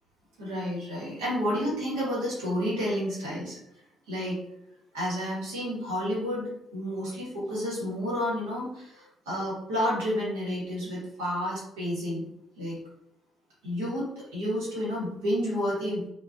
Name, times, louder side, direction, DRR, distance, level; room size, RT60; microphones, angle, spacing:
voice 1, 0.4-3.6 4.1-4.4 4.9-12.2 12.6-12.8 13.6-16.0, equal, 75° right, -6 dB, 1.1 m, -30 dB
2.3 x 2.2 x 2.4 m, 0.81 s
figure-of-eight pair, 45°, 0 cm